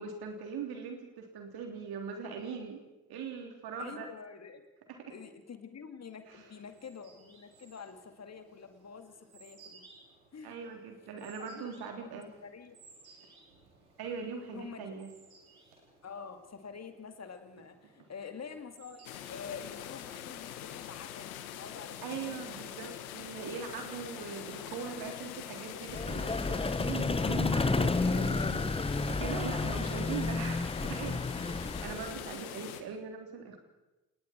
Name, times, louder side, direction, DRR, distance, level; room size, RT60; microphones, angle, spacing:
voice 1, 0.0-2.8 3.1-4.1 5.0-5.1 10.4-12.3 14.0-15.1 22.0-28.7 29.1-33.6, right 6 dB, 60° right, 3 dB, 3.7 m, -41 dB
voice 2, 3.8-4.7 5.1-9.9 10.3-10.6 11.4-12.8 14.5-14.9 16.0-22.7 23.4-23.5 29.7-30.0, left 6 dB, 35° left, 8 dB, 2.4 m, -47 dB
sound 1, 6.2-21.1, right 3 dB, 85° right, 4.7 m, -61 dB
sound 2, 19.0-32.8, left 11 dB, 75° left, 1.5 m, -44 dB
Vehicle, 25.9-32.3, left 3 dB, 15° left, 1.0 m, -31 dB
29.5 x 19.5 x 4.6 m, 1.1 s
figure-of-eight pair, 50°, 42 cm